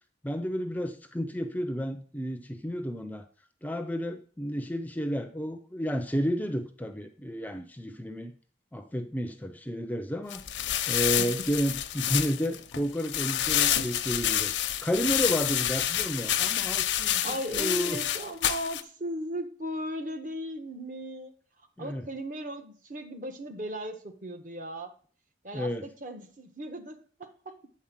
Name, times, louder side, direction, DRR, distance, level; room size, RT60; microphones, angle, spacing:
voice 1, 0.2-3.2 3.6-8.3 8.7-10.4 10.9-14.5 14.8-18.0 21.8-22.1 25.5-25.9, equal, 10° left, 7 dB, 0.5 m, -31 dB
sound 1, 10.3-18.8, left 11 dB, 90° left, 0.7 m, -28 dB
voice 2, 17.2-21.3 21.8-24.9 25.4-27.7, equal, 45° right, 7 dB, 1.2 m, -37 dB
8.7 x 4.2 x 7.3 m, 0.43 s
head